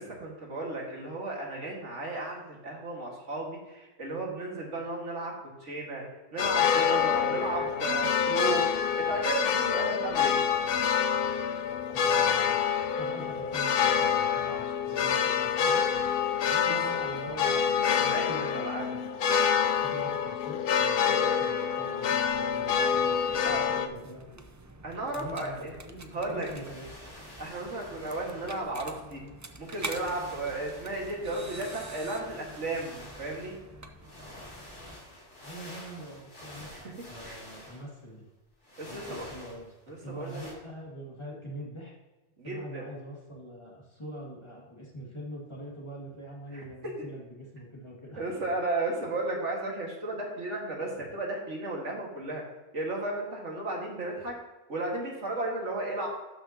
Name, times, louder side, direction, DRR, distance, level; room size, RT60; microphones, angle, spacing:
voice 1, 0.0-6.0 6.3-8.7 8.9-10.4 16.7-16.8 17.9-18.9 23.4-23.6 24.8-25.7 26.1-26.5 27.4-29.2 29.6-33.5 36.7-36.9 37.2-37.4 38.8-39.3 39.9-40.4 42.4-42.8 46.5-46.9 48.2-52.4 52.7-54.4 54.7-56.1, right 2 dB, 85° right, -1 dB, 2.2 m, -34 dB
sound 1, 6.4-23.9, left 7 dB, 60° left, 0.7 m, -27 dB
voice 2, 11.9-12.6 13.0-15.9 16.5-17.8 18.0-24.4 25.2-26.9 35.4-38.3 38.9-39.7 40.0-42.0 42.4-48.3, right 1 dB, 25° left, -3 dB, 2.1 m, -44 dB
sound 2, 22.2-35.0, right 2 dB, 25° right, 0.3 m, -47 dB
sound 3, 26.4-28.7 29.6-33.7 34.0-38.0 38.6-39.9 40.2-40.5, left 1 dB, 80° left, 2.9 m, -48 dB
12.0 x 6.0 x 2.8 m, 1.1 s
omnidirectional pair, 1.2 m